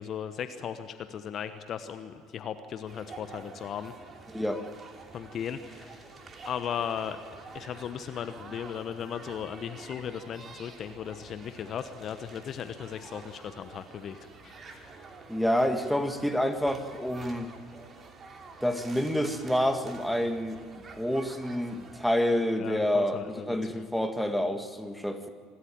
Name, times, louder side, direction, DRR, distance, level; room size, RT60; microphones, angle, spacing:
voice 1, 0.0-3.9 5.1-6.1 6.4-7.2 7.5-14.2 14.4-15.0 22.6-23.9, left 8 dB, 45° left, 10 dB, 1.1 m, -37 dB
sound 1, 2.9-22.1, right 4 dB, 30° right, 2.7 m, -48 dB
voice 2, 4.3-4.6 15.3-17.5 18.6-20.6 21.0-25.3, equal, ahead, 7 dB, 1.9 m, -28 dB
26.0 x 13.0 x 9.1 m, 2.1 s
hypercardioid pair, 65°, 0 cm